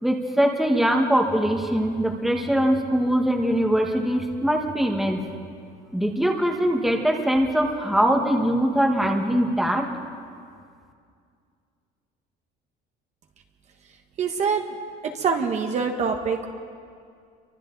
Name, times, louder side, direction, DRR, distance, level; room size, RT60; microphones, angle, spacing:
voice 1, 0.0-5.2 5.9-9.8, equal, ahead, 1 dB, 1.5 m, -22 dB
voice 2, 14.2-14.6 15.1-16.5, right 5 dB, 35° right, 4 dB, 1.2 m, -24 dB
30.0 x 24.0 x 4.0 m, 2.3 s
cardioid pair, 170°, 19 cm